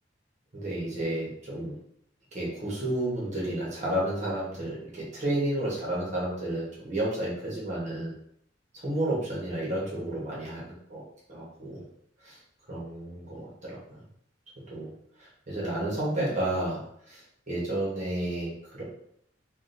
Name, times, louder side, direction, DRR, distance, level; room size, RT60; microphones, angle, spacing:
voice 1, 0.5-1.7 2.3-8.1 8.8-11.0 11.3-11.8 12.2-12.4 12.7-14.0 14.7-14.9 15.2-16.8 17.1-18.8, right 1 dB, 40° right, -6 dB, 1.1 m, -31 dB
3.5 x 2.4 x 2.6 m, 0.71 s
head